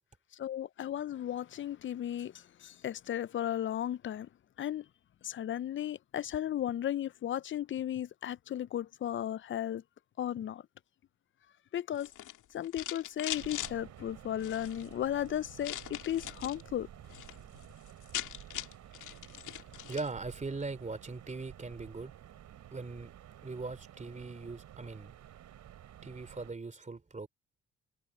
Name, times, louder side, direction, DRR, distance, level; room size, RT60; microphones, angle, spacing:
voice 1, 0.4-2.3 2.6-4.3 4.6-4.8 5.2-9.8 10.2-10.6 11.7-12.1 12.5-16.9, left 11 dB, 40° left, 0.4 m, -35 dB
sound 1, 11.9-13.7 14.3-14.9 15.6-16.6 17.0-17.4 17.6-17.7 17.9-20.1, left 12 dB, 80° left, 2.5 m, -41 dB
sound 2, 13.3-26.5, right 11 dB, 70° right, 3.4 m, -52 dB
voice 2, 19.9-22.1 22.7-23.1 23.4-25.1 26.0-27.3, right 3 dB, 25° right, 3.0 m, -40 dB
cardioid pair, 90°, 30 cm